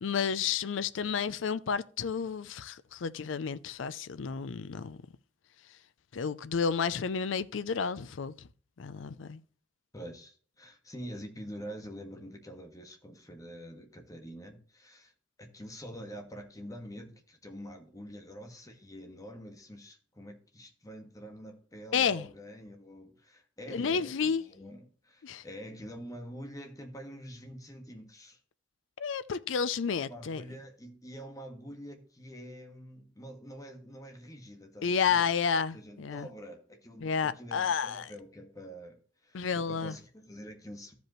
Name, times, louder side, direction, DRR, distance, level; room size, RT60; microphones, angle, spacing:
voice 1, 0.0-5.0 6.1-8.5 8.8-9.4 21.9-22.3 23.7-24.4 25.2-25.4 29.0-30.4 34.8-36.3 37.0-38.1 39.3-40.0, left 6 dB, 90° left, 0.5 m, -31 dB
voice 2, 9.9-15.1 15.4-28.4 29.8-35.3 35.7-40.9, equal, 20° left, 1.5 m, -46 dB
14.5 x 5.2 x 3.0 m
head